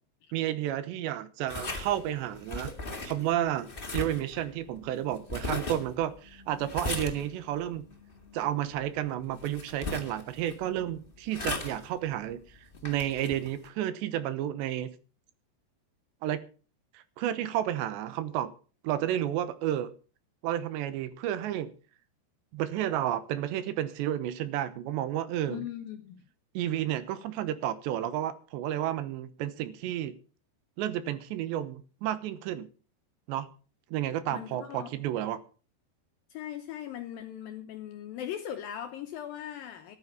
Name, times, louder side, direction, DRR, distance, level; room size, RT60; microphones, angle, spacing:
voice 1, 0.3-2.7 3.1-7.9 8.3-12.4 12.8-14.9 16.2-16.4 16.9-18.5 18.8-19.9 20.4-21.7 22.5-25.7 26.5-30.1 30.8-32.7 33.3-33.5 33.9-35.4, right 12 dB, 85° right, 3.3 m, -31 dB
sound 1, 1.5-13.7, left 2 dB, 55° left, 0.5 m, -39 dB
voice 2, 25.5-26.2 34.3-34.9 36.3-40.0, left 10 dB, 75° left, 2.3 m, -39 dB
14.0 x 11.5 x 5.7 m
omnidirectional pair, 5.0 m